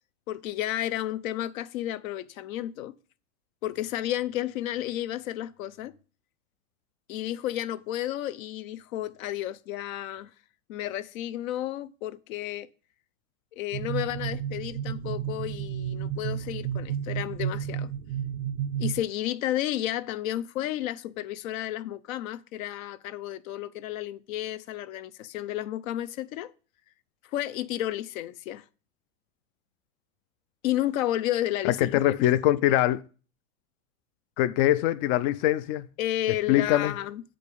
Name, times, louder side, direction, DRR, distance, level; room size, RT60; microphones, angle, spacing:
voice 1, 0.3-2.9 3.6-5.9 7.1-10.3 10.7-12.7 13.5-17.9 18.8-26.5 27.3-28.6 30.6-31.9 36.0-37.2, left 13 dB, 70° left, 0.8 m, -32 dB
sound 1, 13.7-19.0, right 9 dB, 70° right, 0.7 m, -32 dB
voice 2, 31.6-33.0 34.4-35.9 36.5-36.9, left 13 dB, 45° left, 0.5 m, -23 dB
7.7 x 5.2 x 6.7 m
supercardioid pair, 125°, 42 cm